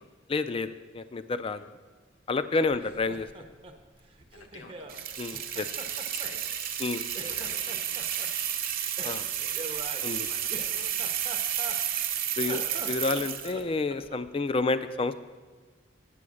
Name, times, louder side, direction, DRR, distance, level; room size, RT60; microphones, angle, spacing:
voice 1, 0.3-1.6 2.3-3.3 5.2-5.7 6.8-7.0 9.0-9.3 10.0-10.3 12.4-15.1, left 3 dB, 30° left, 13 dB, 0.3 m, -29 dB
Laughter, 2.7-5.0 5.3-6.9 7.1-8.3 9.0-12.1 12.4-14.3, right 2 dB, 25° right, 0.6 m, -43 dB
voice 2, 4.3-5.2 6.1-6.4 6.8-8.3 9.2-9.6 10.1-11.2, left 3 dB, 70° left, 3 dB, 1.1 m, -50 dB
sound 1, 4.9-13.6, right 10 dB, 45° right, 0.9 m, -32 dB
8.4 x 7.7 x 6.4 m, 1.4 s
head